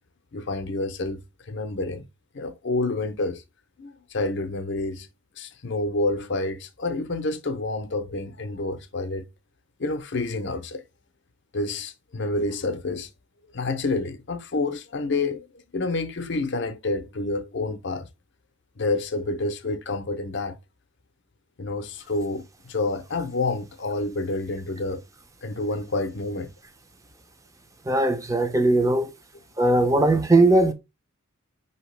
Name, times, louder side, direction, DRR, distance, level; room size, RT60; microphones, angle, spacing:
voice 1, 0.3-1.2 1.5-2.0 2.3-3.4 3.8-5.1 5.4-9.3 9.8-10.8 11.5-13.1 13.5-15.5 15.7-18.1 18.8-20.6 21.6-22.4 22.7-25.0 25.4-26.5, left 2 dB, 55° left, 0.6 m, -28 dB
voice 2, 27.9-29.1 29.6-30.7, right 2 dB, 15° right, 0.5 m, -19 dB
5.6 x 2.8 x 3.2 m
head